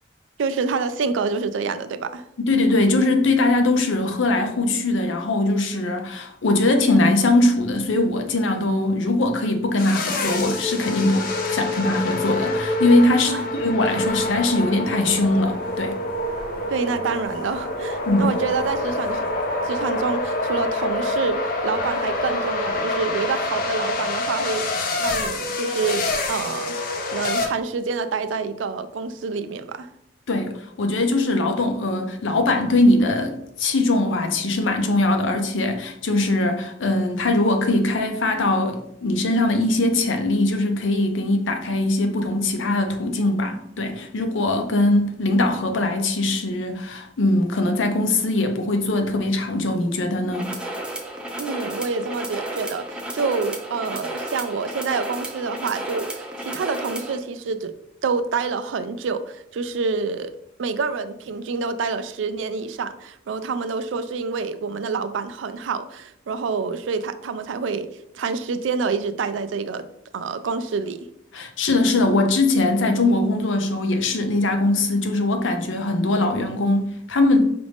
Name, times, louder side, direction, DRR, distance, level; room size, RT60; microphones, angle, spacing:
voice 1, 0.4-2.2 13.3-13.4 16.7-19.3 19.6-24.6 25.0-26.7 27.1-29.9 51.4-57.7 58.0-60.3 60.6-67.9 68.1-69.9 70.1-71.0, right 4 dB, 80° right, 0.4 m, -27 dB
voice 2, 2.4-16.0 18.0-18.3 30.3-50.5 71.3-77.5, left 2 dB, 90° left, 0.6 m, -21 dB
sound 1, 9.8-27.5, left 2 dB, 50° left, 0.6 m, -26 dB
sound 2, 50.3-57.2, right 1 dB, 5° right, 0.4 m, -32 dB
4.9 x 2.5 x 3.4 m
head